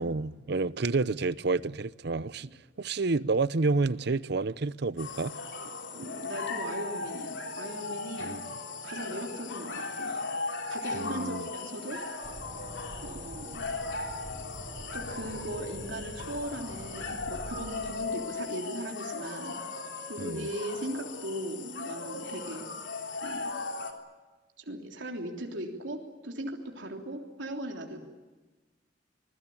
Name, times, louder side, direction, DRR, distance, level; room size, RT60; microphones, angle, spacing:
voice 1, 0.0-2.5 2.8-5.4 8.2-8.5 10.9-11.5 20.2-20.5, right 3 dB, 60° right, 0.7 m, -29 dB
sound 1, 5.0-23.9, left 3 dB, 75° left, 3.3 m, -37 dB
voice 2, 5.6-8.3 8.8-10.1 10.7-12.0 13.0-13.6 14.9-19.5 20.1-22.7 23.2-23.6 24.6-28.0, right 1 dB, 85° right, 3.4 m, -38 dB
sound 2, 12.2-17.9, equal, 30° right, 7.3 m, -44 dB
26.5 x 20.5 x 8.6 m
head